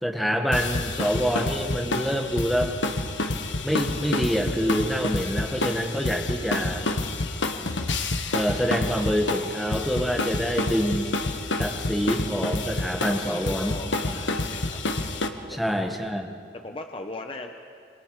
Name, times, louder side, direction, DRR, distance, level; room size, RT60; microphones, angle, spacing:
voice 1, 0.0-2.7 3.6-6.9 8.3-11.1 11.6-13.8 14.1-14.2 15.5-16.4, equal, ahead, 2 dB, 1.6 m, -26 dB
sound 1, 0.5-15.3, left 2 dB, 85° left, 1.4 m, -29 dB
voice 2, 13.0-14.8 15.4-15.9 16.6-17.5, left 2 dB, 30° left, 4 dB, 1.0 m, -39 dB
27.0 x 25.0 x 4.9 m, 2.2 s
head